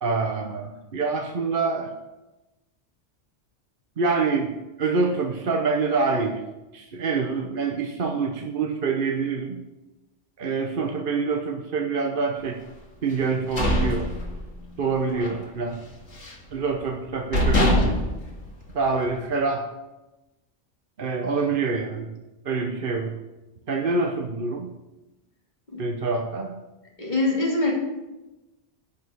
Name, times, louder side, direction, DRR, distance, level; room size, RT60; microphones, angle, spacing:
voice 1, 0.0-1.9 4.0-4.5 4.8-6.4 6.7-9.6 10.4-12.6 13.0-14.1 14.8-15.8 16.5-18.0 18.7-19.7 21.0-22.1 22.4-23.2 23.7-24.7 25.8-26.5, right 4 dB, 50° right, 3 dB, 1.0 m, -26 dB
sound 1, 13.2-14.8 15.1-15.4 15.7-16.5 17.0-17.1 17.3-19.2, left 1 dB, 70° left, 2.5 m, -24 dB
voice 2, 27.0-27.7, left 2 dB, 40° left, -4 dB, 3.2 m, -23 dB
12.0 x 5.2 x 7.9 m, 1.0 s
omnidirectional pair, 1.2 m